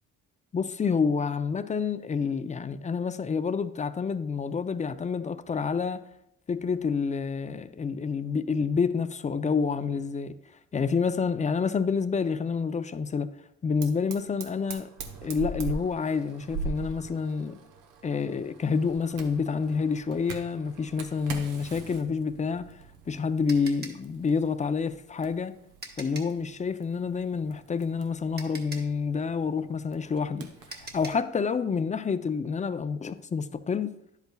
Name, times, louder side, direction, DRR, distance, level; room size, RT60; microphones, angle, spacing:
voice 1, 0.5-6.1 6.5-10.4 10.7-13.3 13.6-14.9 15.2-17.6 18.0-22.7 23.1-25.6 26.0-30.5 30.9-33.9, left 5 dB, 25° left, 0.5 m, -28 dB
Fire, 13.8-31.1, right 4 dB, 90° right, 1.0 m, -43 dB
sound 1, 22.6-26.4 27.8-27.9 28.4-31.3, right 2 dB, 35° right, 1.4 m, -44 dB
10.0 x 8.1 x 2.3 m
cardioid pair, 90°, 30 cm